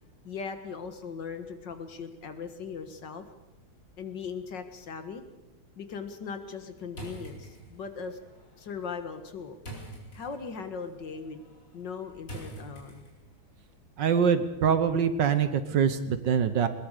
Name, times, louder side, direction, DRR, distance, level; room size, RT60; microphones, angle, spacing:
voice 1, 0.2-3.2 4.0-5.2 5.8-8.2 8.6-9.6 10.1-11.4 11.7-13.0, left 5 dB, 60° left, 8 dB, 2.1 m, -39 dB
sound 1, 6.9-13.4, right 2 dB, 40° left, 5.0 m, -47 dB
voice 2, 14.0-16.7, right 7 dB, 60° right, 11 dB, 1.6 m, -24 dB
20.5 x 20.0 x 6.7 m, 1.0 s
omnidirectional pair, 2.3 m